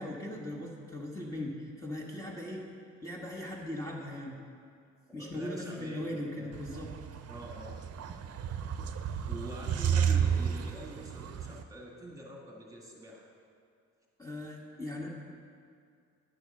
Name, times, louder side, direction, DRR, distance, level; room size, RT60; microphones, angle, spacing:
voice 1, 0.0-2.6 3.0-4.4 5.1-6.9 14.2-15.1, left 1 dB, 10° left, -3 dB, 1.4 m, -39 dB
voice 2, 5.2-6.6 7.3-7.9 9.3-13.3, right 1 dB, 10° right, -2 dB, 1.9 m, -45 dB
sound 1, 6.5-11.6, right 8 dB, 55° right, 0.7 m, -32 dB
10.5 x 6.4 x 6.4 m, 2.3 s
cardioid pair, 90°, 30 cm